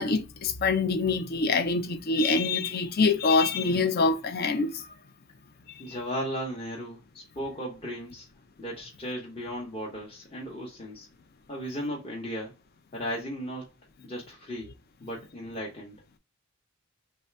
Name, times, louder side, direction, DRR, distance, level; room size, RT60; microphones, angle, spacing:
voice 1, 0.0-4.9 5.9-6.0, left 4 dB, 45° left, 0.5 m, -25 dB
voice 2, 5.8-8.3 8.6-11.1 11.5-12.5 12.9-13.7 14.0-14.7 15.0-16.0, equal, 25° left, 0.8 m, -36 dB
3.2 x 2.7 x 4.5 m
head